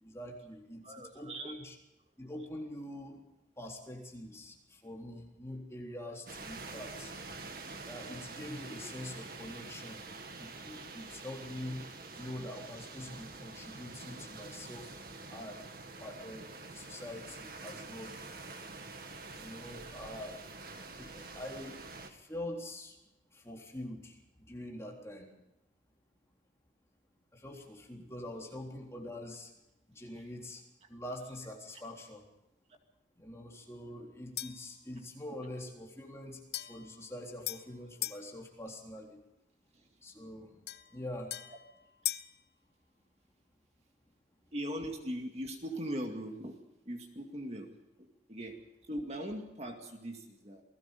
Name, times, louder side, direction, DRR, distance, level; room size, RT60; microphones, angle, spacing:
voice 1, 0.0-1.8 2.2-3.2 3.6-7.1 7.9-10.0 10.3-11.9 12.2-14.9 15.3-15.7 16.0-18.1 19.4-20.4 20.9-21.8 22.1-23.0 23.3-24.2 24.5-25.3 27.3-29.5 29.9-30.6 30.9-32.3 33.2-39.2 40.0-40.5 40.9-41.3, left 1 dB, 15° left, 0 dB, 3.7 m, -44 dB
voice 2, 0.8-1.5 28.3-28.5 30.8-30.9 39.7-39.9 44.5-46.6 46.9-47.7 48.0-48.6 48.9-50.6, equal, 35° right, 3 dB, 2.2 m, -40 dB
sound 1, 6.3-22.1, right 3 dB, 55° right, 2.2 m, -47 dB
sound 2, 34.4-34.7 36.5-38.3 40.7-42.4, left 13 dB, 60° left, 0.9 m, -40 dB
28.0 x 19.0 x 5.3 m, 0.88 s
head